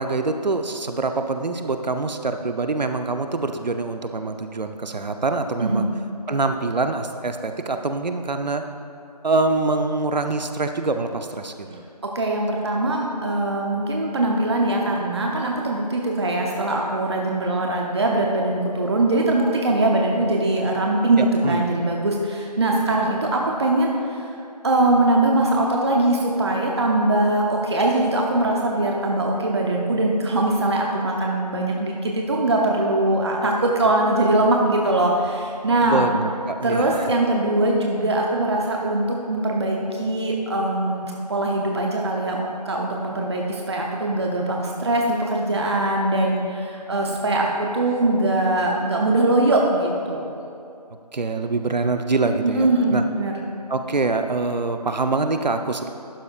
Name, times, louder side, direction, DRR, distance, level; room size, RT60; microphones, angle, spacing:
voice 1, 0.0-5.9 6.3-8.6 9.2-11.8 21.2-21.6 35.8-37.1 51.1-53.0 53.7-55.9, right 3 dB, 85° right, 7 dB, 0.7 m, -25 dB
voice 2, 12.0-24.3 24.6-36.1 36.6-50.3 52.4-53.3, right 2 dB, 40° right, 0 dB, 0.7 m, -22 dB
12.0 x 8.4 x 2.4 m, 2.6 s
figure-of-eight pair, 165°, 21 cm